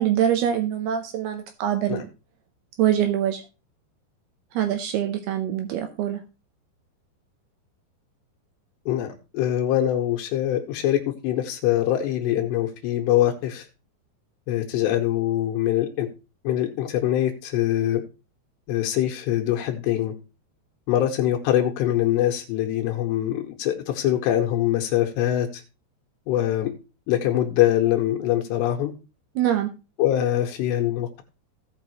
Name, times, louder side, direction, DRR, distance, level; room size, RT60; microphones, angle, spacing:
voice 1, 0.0-2.0 2.8-3.4 4.5-6.2 29.4-29.7, right 10 dB, 75° right, 6 dB, 2.6 m, -24 dB
voice 2, 8.9-13.7 14.5-16.1 16.4-18.0 18.7-20.1 20.9-25.6 26.3-26.7 27.1-28.9 30.0-31.2, left 12 dB, 80° left, 3 dB, 3.1 m, -23 dB
17.0 x 5.9 x 3.0 m, 0.30 s
omnidirectional pair, 5.0 m